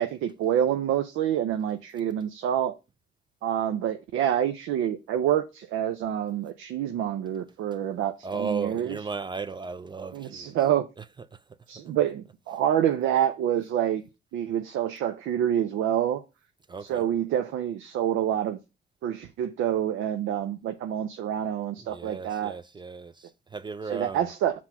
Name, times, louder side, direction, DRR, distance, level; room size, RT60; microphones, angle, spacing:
voice 1, 0.0-2.8 3.4-9.0 10.1-10.9 11.7-14.0 14.3-16.2 16.9-18.6 19.0-22.5 23.9-24.5, right 10 dB, 80° right, 0.5 m, -27 dB
voice 2, 8.2-10.6 11.0-11.1 11.3-11.4 16.7-17.0 21.8-24.3, right 4 dB, 25° right, 0.4 m, -35 dB
5.9 x 3.0 x 5.7 m
cardioid pair, 90°, 20 cm